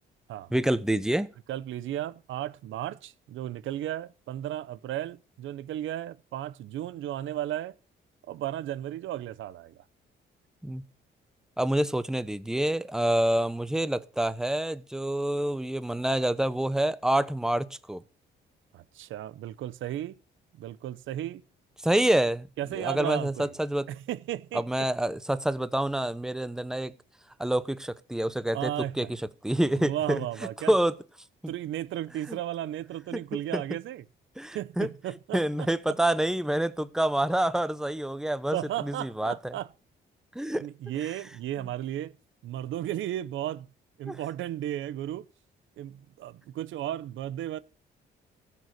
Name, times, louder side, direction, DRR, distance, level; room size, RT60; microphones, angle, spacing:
voice 1, 0.5-1.3 10.6-10.8 11.6-18.0 21.8-22.5 22.7-23.9 24.5-26.9 27.4-28.7 29.0-30.3 30.7-30.9 32.3-32.4 33.1-33.2 33.5-33.6 34.4-34.9 35.3-39.5 40.3-40.7 41.0-41.1 44.0-44.2, right 1 dB, 5° right, 0.8 m, -27 dB
voice 2, 1.5-7.7 8.3-9.8 18.7-20.1 20.5-21.4 22.6-23.5 23.9-24.9 28.5-29.1 29.7-30.7 31.5-34.0 34.5-35.7 38.5-39.7 40.6-42.1 42.4-43.7 44.0-45.3 45.8-47.6, right 12 dB, 80° right, 0.7 m, -34 dB
15.0 x 6.8 x 6.5 m
cardioid pair, 90°, 20 cm